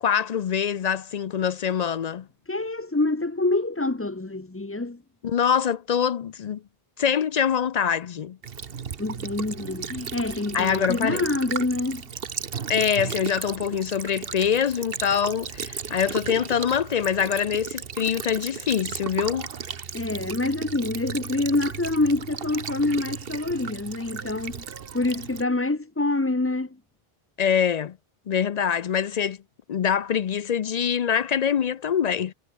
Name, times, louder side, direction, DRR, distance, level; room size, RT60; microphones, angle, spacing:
voice 1, 0.0-2.3 5.2-6.6 7.0-8.4 10.5-11.3 12.7-19.5 27.4-28.0 28.3-29.4 29.7-32.3, left 8 dB, 50° left, 0.5 m, -24 dB
voice 2, 2.5-5.0 9.0-12.0 19.9-24.7 24.9-26.8, left 2 dB, 15° left, 0.7 m, -26 dB
Child speech kid speaking / Bird vocalization bird call bird song / Stream, 8.4-25.4, right 7 dB, 65° right, 1.3 m, -35 dB
omnidirectional pair, 1.0 m